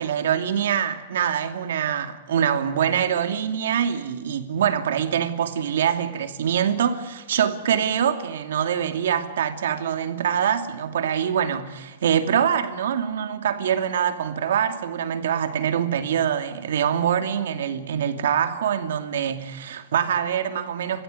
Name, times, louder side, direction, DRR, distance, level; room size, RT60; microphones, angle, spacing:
voice 1, 0.0-21.0, right 8 dB, 90° right, 2.6 m, -24 dB
29.5 x 16.0 x 9.6 m
supercardioid pair, 165°, 0 cm